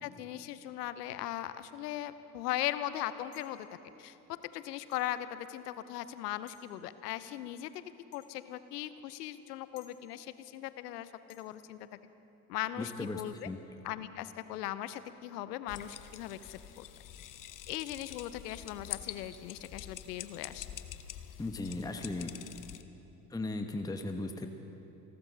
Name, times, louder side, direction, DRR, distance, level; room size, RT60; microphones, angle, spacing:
voice 1, 0.0-3.7 4.0-4.2 4.5-7.8 8.1-11.8 12.5-13.5 13.8-16.9 17.7-20.7, left 13 dB, 75° left, 14 dB, 0.8 m, -39 dB
sound 1, 3.3-3.7 4.9-5.1 6.5-6.7 8.1-8.4 9.8-10.0 11.3-11.5, left 9 dB, 55° left, 2.1 m, -60 dB
voice 2, 12.8-13.6 21.4-22.3 23.3-24.5, left 2 dB, 10° left, 5 dB, 1.0 m, -37 dB
sound 2, 15.7-22.8, left 11 dB, 40° left, 0.9 m, -46 dB
28.0 x 12.5 x 4.0 m, 2.9 s
hypercardioid pair, 60°, 48 cm